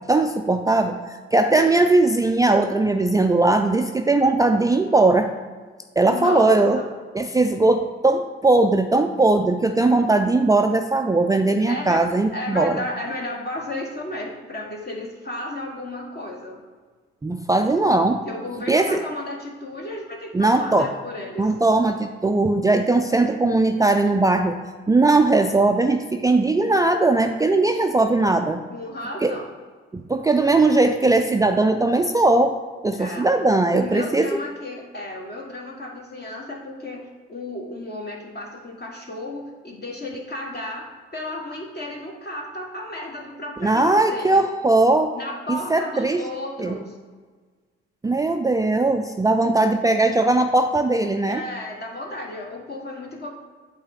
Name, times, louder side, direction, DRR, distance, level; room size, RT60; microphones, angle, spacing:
voice 1, 0.1-5.3 6.0-6.8 7.1-12.8 17.2-18.2 18.7-19.0 20.3-20.9 21.4-24.6 24.9-28.6 29.2-29.3 29.9-32.5 32.8-34.3 43.6-45.1 45.5-46.2 46.6-46.8 48.0-51.4, right 2 dB, 10° right, 5 dB, 0.4 m, -19 dB
voice 2, 1.5-1.9 6.1-6.9 11.6-16.6 18.2-21.5 28.7-29.5 32.9-33.3 33.7-37.0 37.3-44.5 45.1-47.0 51.3-53.3, left 1 dB, 30° left, -1 dB, 1.3 m, -33 dB
8.6 x 3.4 x 5.7 m, 1.5 s
figure-of-eight pair, 40°, 31 cm